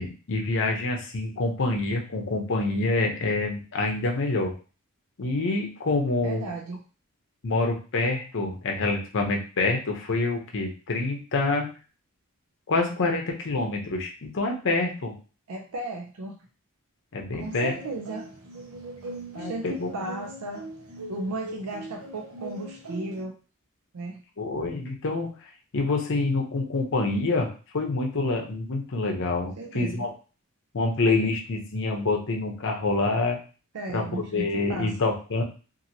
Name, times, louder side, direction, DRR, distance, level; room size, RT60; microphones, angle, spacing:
voice 1, 0.0-4.6 5.2-6.5 7.4-11.7 12.7-15.1 17.1-17.7 19.3-20.1 24.4-25.4 25.7-30.1 30.7-33.4 33.9-35.4, left 3 dB, 60° left, 1 dB, 0.7 m, -27 dB
voice 2, 6.2-6.8 15.5-16.4 17.3-18.3 19.3-20.7 21.1-23.3 23.9-24.2 29.6-30.1 33.7-35.0, right 2 dB, 90° right, 2 dB, 0.5 m, -35 dB
sound 1, 17.4-23.2, right 2 dB, 70° right, 0.8 m, -40 dB
2.9 x 2.6 x 2.6 m, 0.35 s
head